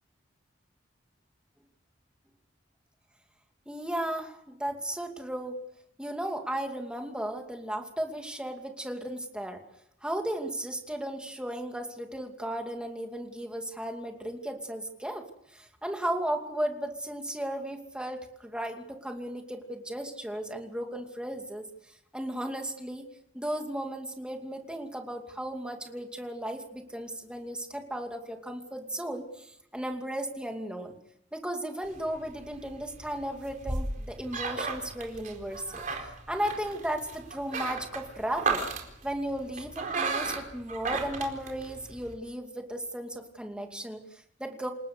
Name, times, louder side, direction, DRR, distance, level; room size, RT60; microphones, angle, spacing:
voice 1, 3.7-5.6 6.0-9.6 10.0-15.2 15.5-21.7 22.1-23.1 23.3-30.9 31.3-38.6 39.0-44.7, right 1 dB, 5° right, 3 dB, 2.5 m, -35 dB
sound 1, 31.9-42.1, right 4 dB, 45° right, 4.3 m, -35 dB
28.0 x 18.5 x 6.8 m, 0.77 s
head